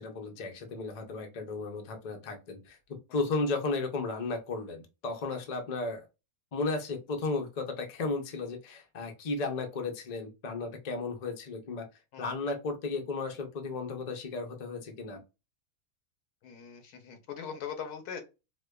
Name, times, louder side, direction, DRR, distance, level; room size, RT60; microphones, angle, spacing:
voice 1, 0.0-2.8 3.1-6.0 6.5-11.9 12.2-15.2, left 3 dB, 45° left, 0.5 m, -34 dB
voice 2, 16.4-18.2, left 7 dB, 85° left, 1.3 m, -41 dB
4.8 x 2.2 x 2.3 m
omnidirectional pair, 1.6 m